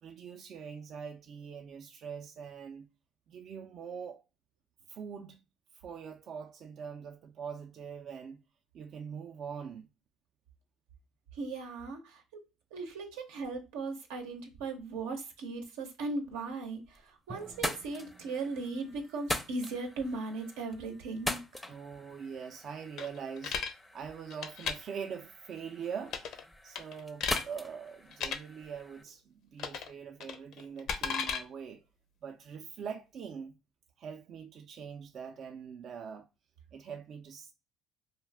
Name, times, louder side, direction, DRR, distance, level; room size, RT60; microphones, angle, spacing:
voice 1, 0.0-2.9 3.3-4.2 4.9-5.4 5.7-8.4 8.7-9.9 21.7-23.6 23.9-26.2 26.6-31.8 32.2-33.5 34.0-36.3 36.7-37.5, right 6 dB, 55° right, 0.3 m, -43 dB
voice 2, 11.3-12.4 12.7-21.6, right 3 dB, 90° right, 0.7 m, -38 dB
sound 1, 16.6-17.1 17.4-29.0, left 1 dB, 10° left, 0.4 m, -42 dB
Drum, 17.3-19.2, right 3 dB, 25° right, 0.7 m, -53 dB
sound 2, 23.0-23.7 24.3-24.7 26.1-26.4 26.7-27.4 28.1-28.4 29.6-29.9 30.2-31.4, left 6 dB, 65° left, 0.5 m, -34 dB
2.4 x 2.1 x 3.3 m
supercardioid pair, 90°, 0 cm